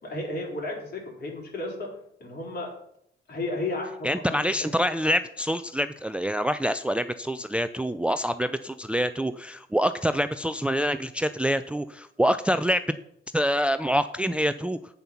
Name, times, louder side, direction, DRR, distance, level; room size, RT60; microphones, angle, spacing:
voice 1, 0.0-1.9 2.2-2.7 3.3-4.7, left 2 dB, 55° left, -1 dB, 4.3 m, -33 dB
voice 2, 4.0-12.8 13.3-14.8, equal, 5° right, 12 dB, 0.4 m, -26 dB
8.5 x 7.8 x 5.8 m, 0.72 s
cardioid pair, 90°, 20 cm